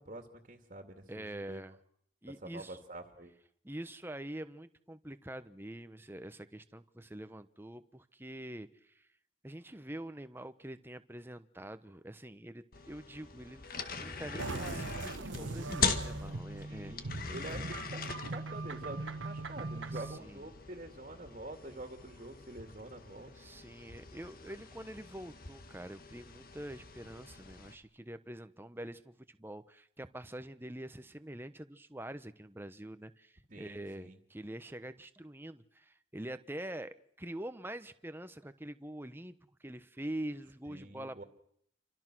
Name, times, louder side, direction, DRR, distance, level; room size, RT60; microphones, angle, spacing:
voice 1, 0.0-1.6 2.4-3.3 16.7-23.3 33.5-34.2 40.7-41.2, right 1 dB, 40° right, 5 dB, 2.3 m, -47 dB
voice 2, 1.1-1.8 2.2-2.8 3.6-9.1 9.4-13.7 13.9-16.9 19.9-20.5 23.3-41.2, right 1 dB, 10° right, 10 dB, 1.0 m, -45 dB
sound 1, 12.7-27.7, left 5 dB, 50° left, 1.9 m, -41 dB
sound 2, 14.4-20.2, right 3 dB, 80° right, 1.2 m, -40 dB
29.0 x 25.0 x 6.2 m, 0.69 s
head